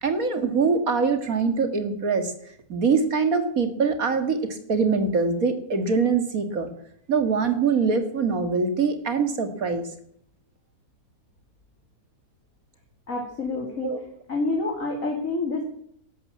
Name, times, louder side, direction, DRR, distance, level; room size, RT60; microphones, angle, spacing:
voice 1, 0.0-2.3 2.7-6.7 7.1-9.8 13.8-14.0, right 5 dB, 60° right, 7 dB, 2.4 m, -23 dB
voice 2, 13.1-13.9 14.3-15.6, left 3 dB, 55° left, 0 dB, 3.1 m, -27 dB
12.5 x 12.0 x 8.6 m, 0.69 s
omnidirectional pair, 1.6 m